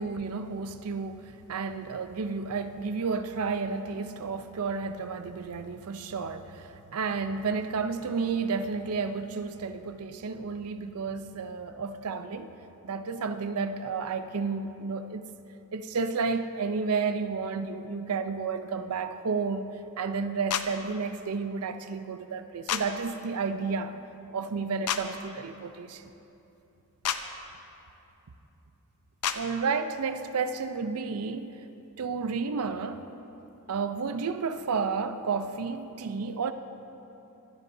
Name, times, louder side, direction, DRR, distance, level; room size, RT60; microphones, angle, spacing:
voice 1, 0.0-12.6 12.8-15.3 15.7-23.9 24.3-26.1 29.3-31.6 32.0-33.1 33.7-36.5, right 5 dB, 75° right, 0.5 m, -31 dB
sound 1, 20.5-20.7 22.7-22.8 24.9-25.0 27.0-27.2 29.2-29.4, left 9 dB, 90° left, 0.6 m, -28 dB
18.0 x 12.5 x 2.7 m
head